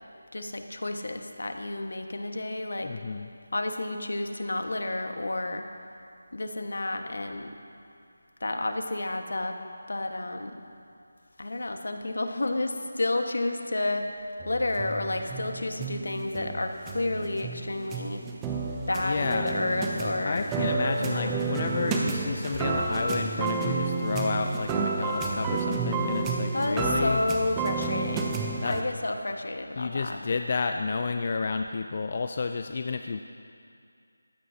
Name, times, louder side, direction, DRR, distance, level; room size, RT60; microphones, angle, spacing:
voice 1, 0.3-2.9 3.5-5.7 6.3-7.5 8.4-9.6 9.9-10.5 11.4-14.0 14.4-18.2 18.9-20.4 21.0-21.3 26.5-28.4 28.6-30.2, left 2 dB, 75° left, 5 dB, 1.5 m, -31 dB
voice 2, 2.8-3.3 19.0-19.5 20.2-27.2 28.6-28.8 29.8-33.2, left 4 dB, 40° left, 6 dB, 0.5 m, -30 dB
sound 1, 14.4-28.8, right 4 dB, 10° right, 0.8 m, -31 dB
21.5 x 15.5 x 2.9 m, 2.4 s
figure-of-eight pair, 170°, 0 cm